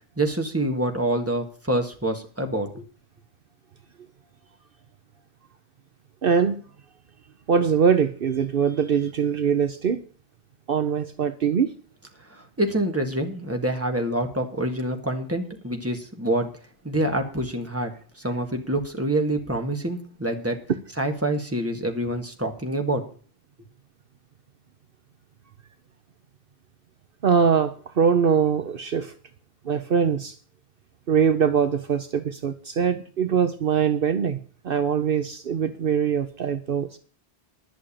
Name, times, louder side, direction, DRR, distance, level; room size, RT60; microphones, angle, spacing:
voice 1, 0.2-2.9 12.6-16.5 16.8-17.9 18.2-20.6 21.0-23.1, right 1 dB, 15° right, 3 dB, 1.9 m, -26 dB
voice 2, 6.2-6.6 7.5-10.0 10.7-11.7 27.2-29.1 29.6-30.3 31.1-34.4 34.6-37.0, right 7 dB, 60° right, 9 dB, 1.0 m, -22 dB
11.5 x 6.4 x 8.7 m, 0.41 s
omnidirectional pair, 1.1 m